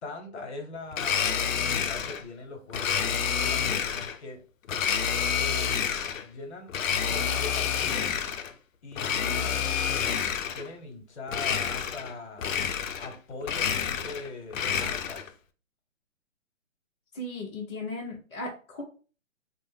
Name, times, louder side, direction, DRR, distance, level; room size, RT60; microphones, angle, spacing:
voice 1, 0.0-4.4 5.4-5.7 6.1-6.7 7.1-8.1 8.8-10.1 10.5-12.6 13.0-15.3, left 3 dB, 55° left, 4 dB, 0.9 m, -41 dB
Domestic sounds home sounds, 0.9-2.2 2.7-4.2 4.7-6.3 6.7-8.5 8.9-10.7 11.3-12.1 12.4-13.2 13.4-15.3, left 7 dB, 70° left, 0.5 m, -28 dB
voice 2, 17.1-18.8, left 2 dB, 20° left, -7 dB, 0.6 m, -36 dB
2.4 x 2.1 x 3.4 m, 0.37 s
hypercardioid pair, 155°, 41 cm